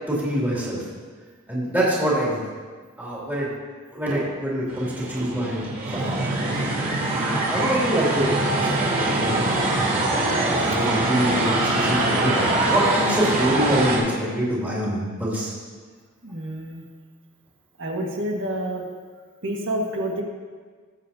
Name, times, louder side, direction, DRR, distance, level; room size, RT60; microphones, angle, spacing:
voice 1, 0.1-0.8 1.5-2.4 3.0-3.5 3.9-5.6 5.9-6.2 7.1-10.0 10.5-15.5, equal, 10° right, -7 dB, 2.7 m, -25 dB
sound 1, 4.7-14.0, right 2 dB, 40° right, 3.2 m, -23 dB
voice 2, 16.2-16.8 17.8-18.8 19.4-20.2, right 1 dB, 60° right, 0 dB, 1.7 m, -28 dB
20.5 x 7.3 x 2.8 m, 1.5 s
head